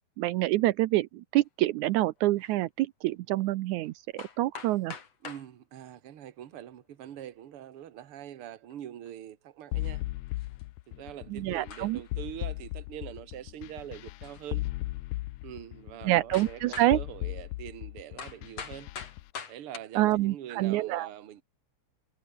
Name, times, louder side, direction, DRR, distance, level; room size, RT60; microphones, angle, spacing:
voice 1, 0.0-5.0 11.3-12.0 16.1-17.0 20.0-21.1, right 16 dB, 80° right, 2.1 m, -27 dB
sound 1, 2.4-2.6 3.8-3.9 4.2-5.5 6.8-7.3 8.7-8.8 9.1-9.2 10.4-10.6 11.1-11.2 11.7-12.1 14.2-14.5 15.2-15.3 16.3-17.0 18.2-19.8, left 6 dB, 55° left, 4.0 m, -44 dB
voice 2, 5.2-10.0 10.9-14.6 15.4-18.9 19.5-21.4, right 11 dB, 55° right, 2.2 m, -44 dB
sound 2, 9.7-19.2, left 18 dB, 80° left, 2.1 m, -37 dB
omnidirectional pair, 3.5 m